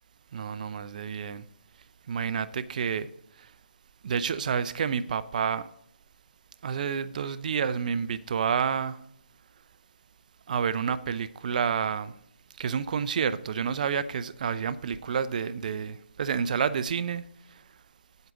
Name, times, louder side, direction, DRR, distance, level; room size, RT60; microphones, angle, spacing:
voice 1, 0.3-1.4 2.1-3.1 4.0-5.6 6.6-9.0 10.5-12.1 12.6-17.2, right 7 dB, 45° right, 0.5 m, -29 dB
9.2 x 8.0 x 3.8 m
hypercardioid pair, 155°, 6 cm